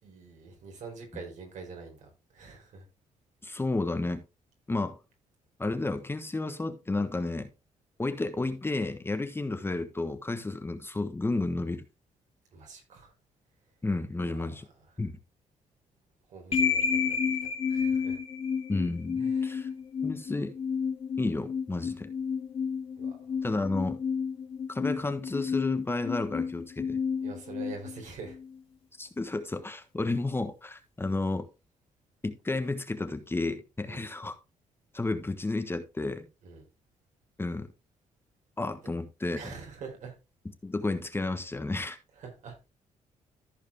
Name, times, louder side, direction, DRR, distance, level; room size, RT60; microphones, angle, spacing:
voice 1, 0.0-2.8 12.5-13.1 14.2-14.5 16.3-17.4 17.7-18.2 19.2-19.7 23.0-23.2 27.2-28.4 33.9-34.1 36.4-36.6 39.3-40.1 42.2-42.6, right 4 dB, 70° right, 4.3 m, -45 dB
voice 2, 3.4-4.2 4.7-5.0 5.6-7.5 8.0-11.8 13.8-14.7 15.0-15.2 18.7-19.7 20.0-20.5 21.2-22.1 23.4-24.0 24.7-27.0 29.0-31.5 32.2-34.4 34.9-36.3 37.4-37.7 38.6-39.4 40.6-42.0, left 2 dB, 20° left, 1.2 m, -31 dB
sound 1, 16.5-28.6, left 6 dB, 50° left, 2.6 m, -31 dB
14.5 x 4.9 x 3.4 m
cardioid pair, 85°, 13 cm